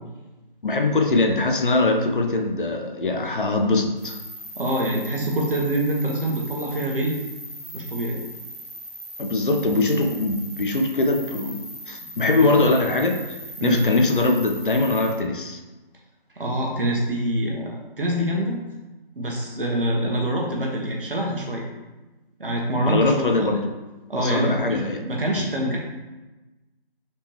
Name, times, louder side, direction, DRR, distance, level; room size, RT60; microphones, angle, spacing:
voice 1, 0.6-4.2 9.2-13.2 13.6-15.6 22.9-23.7 24.1-25.0, left 2 dB, 60° left, 3 dB, 0.7 m, -22 dB
sound 1, 4.0-15.1, right 1 dB, 40° right, 1.4 m, -39 dB
voice 2, 4.6-7.2 7.7-8.2 12.2-12.7 13.6-13.8 16.3-18.6 19.1-21.6 22.4-23.5 24.1-25.8, right 1 dB, 65° right, -1 dB, 1.2 m, -25 dB
4.2 x 3.7 x 3.0 m, 1.1 s
figure-of-eight pair, 165°, 29 cm